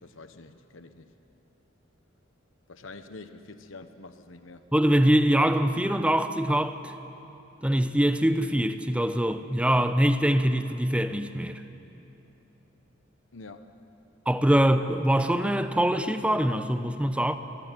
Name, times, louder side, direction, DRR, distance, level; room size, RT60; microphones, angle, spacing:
voice 1, 0.0-1.1 2.7-4.6 13.3-13.7 14.5-14.7, left 3 dB, 75° left, 1.1 m, -46 dB
voice 2, 4.7-6.9 7.6-11.6 14.3-17.4, right 1 dB, 5° right, 0.8 m, -23 dB
25.0 x 22.0 x 9.2 m
head